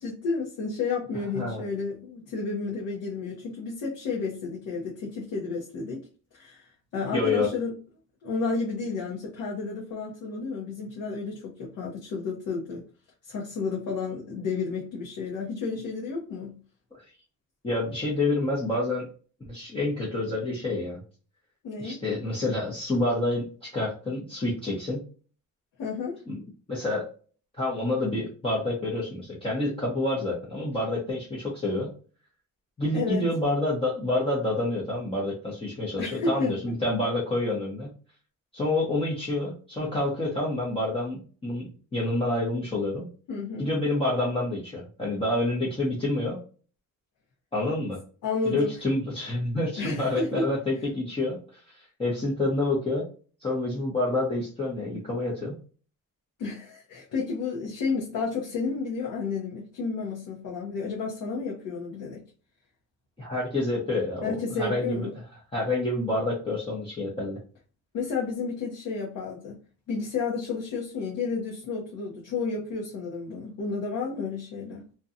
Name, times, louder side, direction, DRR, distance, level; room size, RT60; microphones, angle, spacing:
voice 1, 0.0-6.0 6.3-6.7 6.9-7.7 8.2-12.8 13.2-16.6 21.6-22.0 25.8-26.2 32.9-33.2 36.0-36.5 43.3-43.7 48.2-48.7 49.8-50.5 56.4-62.2 64.2-65.1 67.9-69.6 69.9-74.8, left 4 dB, 65° left, 0.8 m, -31 dB
voice 2, 7.1-7.5 17.6-19.1 19.5-21.0 21.8-25.0 26.3-26.4 26.7-27.1 27.6-31.9 32.8-37.9 38.5-43.1 43.6-46.4 47.5-48.0 48.4-53.0 53.4-55.6 63.2-65.1 65.5-67.4, left 2 dB, 15° left, 0.7 m, -28 dB
2.7 x 2.2 x 2.5 m
cardioid pair, 140°, 33 cm